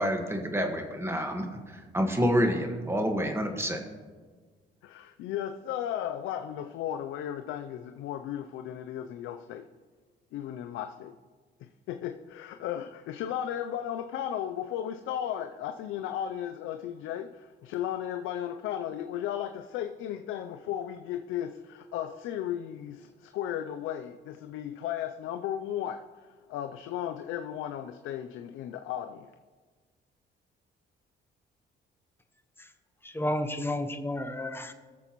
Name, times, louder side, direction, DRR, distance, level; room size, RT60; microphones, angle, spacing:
voice 1, 0.0-3.8, equal, 10° right, 1.5 m, -28 dB
voice 2, 4.8-9.7 10.3-11.1 11.6-26.0 26.5-29.3, left 10 dB, 90° left, 0.5 m, -35 dB
voice 3, 33.0-34.7, left 1 dB, 10° left, 0.9 m, -32 dB
19.5 x 6.8 x 3.0 m
cardioid pair, 90°, 20 cm